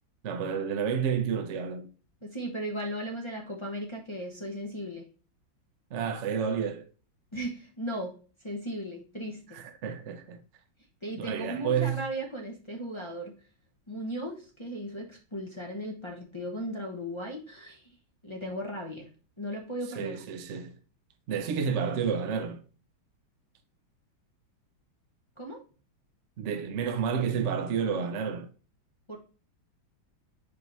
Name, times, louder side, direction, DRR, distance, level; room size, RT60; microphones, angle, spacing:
voice 1, 0.2-1.9 5.9-6.9 9.5-10.4 11.1-12.0 20.0-20.8 21.3-22.6 26.4-28.5, right 7 dB, 70° right, 0.7 m, -30 dB
voice 2, 2.2-5.0 7.3-8.1 8.4-9.6 11.0-13.3 13.9-17.9 18.2-19.1 19.4-20.2 25.4-25.6 29.1-29.2, equal, 25° left, 0.6 m, -36 dB
5.2 x 4.7 x 4.0 m
omnidirectional pair, 2.2 m